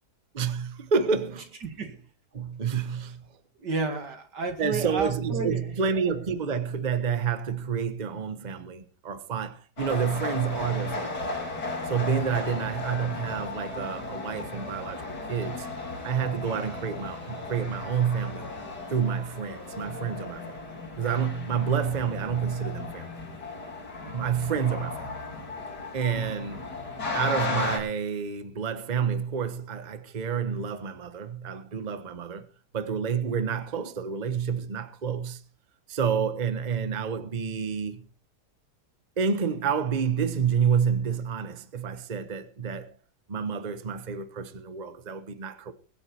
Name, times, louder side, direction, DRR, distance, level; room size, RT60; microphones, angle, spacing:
voice 1, 0.3-1.5 2.3-3.2 4.6-11.2 11.9-15.7 16.0-18.5 18.9-20.6 21.0-23.1 24.1-25.1 25.9-26.6 27.1-32.5 32.7-35.4 35.9-38.0 39.2-42.9 43.3-45.7, right 6 dB, 30° right, 1.1 m, -29 dB
voice 2, 1.6-2.0 3.6-5.7, right 4 dB, 80° right, 2.7 m, -31 dB
sound 1, 9.8-27.8, left 3 dB, 75° left, 5.2 m, -35 dB
22.0 x 7.9 x 4.3 m
omnidirectional pair, 1.8 m